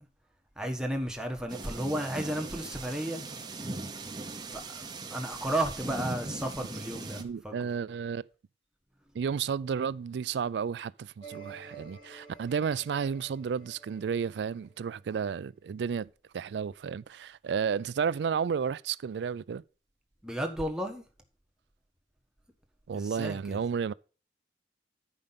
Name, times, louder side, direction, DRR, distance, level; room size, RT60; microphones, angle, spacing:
voice 1, 0.6-3.2 4.5-7.7 20.2-21.0 22.9-23.6, right 1 dB, 5° right, 1.2 m, -33 dB
sound 1, 1.5-7.2, right 2 dB, 25° right, 0.9 m, -39 dB
voice 2, 7.2-8.2 9.1-16.1 16.3-19.6 22.9-23.9, right 6 dB, 75° right, 0.3 m, -32 dB
sound 2, 11.2-15.1, right 5 dB, 30° left, 2.2 m, -50 dB
10.5 x 5.2 x 5.6 m
head